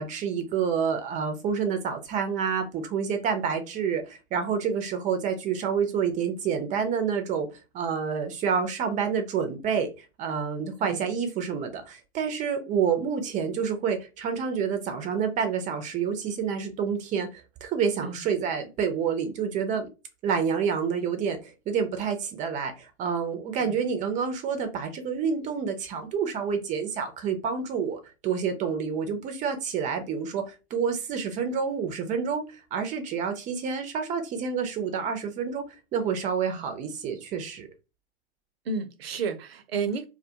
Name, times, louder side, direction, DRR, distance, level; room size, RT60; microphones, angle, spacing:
voice 1, 0.0-7.5 7.7-19.9 20.2-35.6 35.9-37.7, right 6 dB, 25° right, 0.5 m, -28 dB
voice 2, 38.7-40.1, right 5 dB, 70° right, 0.6 m, -32 dB
2.2 x 2.2 x 2.7 m
figure-of-eight pair, 100°, 32 cm